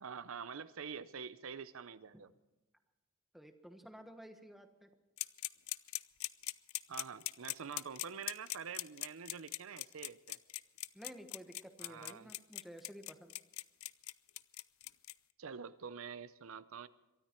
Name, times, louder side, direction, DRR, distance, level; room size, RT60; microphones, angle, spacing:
voice 1, 0.0-2.3 6.9-10.4 11.8-12.3 15.4-16.9, right 6 dB, 75° right, 14 dB, 0.6 m, -46 dB
voice 2, 3.3-4.9 10.9-13.4, equal, ahead, 6 dB, 1.2 m, -53 dB
sound 1, 5.2-15.1, left 17 dB, 85° left, 0.5 m, -41 dB
23.0 x 13.0 x 4.4 m, 1.0 s
head